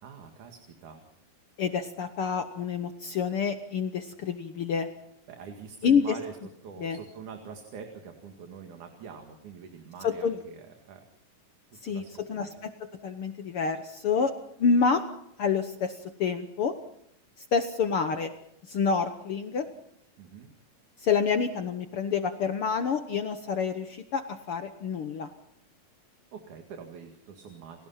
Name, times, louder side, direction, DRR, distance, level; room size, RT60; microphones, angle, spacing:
voice 1, 0.0-1.0 5.3-6.4 6.6-11.0 11.7-12.6 20.2-20.5 26.3-27.9, right 6 dB, 65° right, 4 dB, 3.5 m, -44 dB
voice 2, 1.6-4.9 5.8-6.1 6.8-7.0 10.0-10.4 11.8-12.0 12.3-12.5 13.0-14.3 14.6-15.0 15.4-16.7 17.5-18.3 18.7-19.6 21.0-25.3, left 6 dB, 65° left, 9 dB, 1.4 m, -27 dB
29.5 x 17.5 x 5.7 m, 0.75 s
omnidirectional pair, 3.9 m